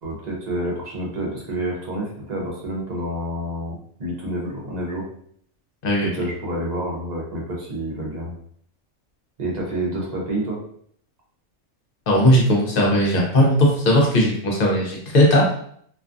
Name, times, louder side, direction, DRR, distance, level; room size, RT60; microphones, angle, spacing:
voice 1, 0.0-5.0 6.0-8.4 9.4-10.6, right 1 dB, 40° right, -4 dB, 0.8 m, -28 dB
voice 2, 12.1-15.5, equal, 50° left, -2 dB, 0.8 m, -17 dB
2.5 x 2.3 x 2.5 m, 0.64 s
omnidirectional pair, 1.3 m